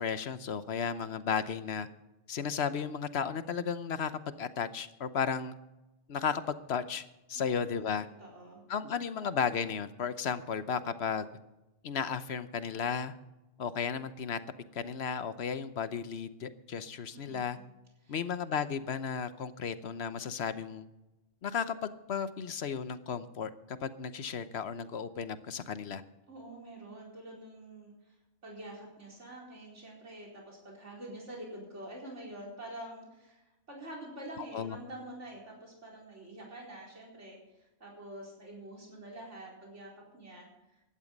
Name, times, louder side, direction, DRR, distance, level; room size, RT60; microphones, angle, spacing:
voice 1, 0.0-1.9 2.3-4.1 4.4-5.5 6.1-7.0 7.3-8.1 8.7-11.3 11.8-13.1 13.6-14.4 14.7-17.6 18.1-20.8 21.4-26.0 34.4-34.8, left 6 dB, 60° left, 12 dB, 1.1 m, -34 dB
voice 2, 7.3-7.8 8.2-8.6 17.1-17.7 18.0-18.2 26.3-28.1 28.4-40.5, right 1 dB, 75° right, -2 dB, 4.7 m, -47 dB
15.5 x 11.5 x 5.3 m, 0.99 s
omnidirectional pair, 1.2 m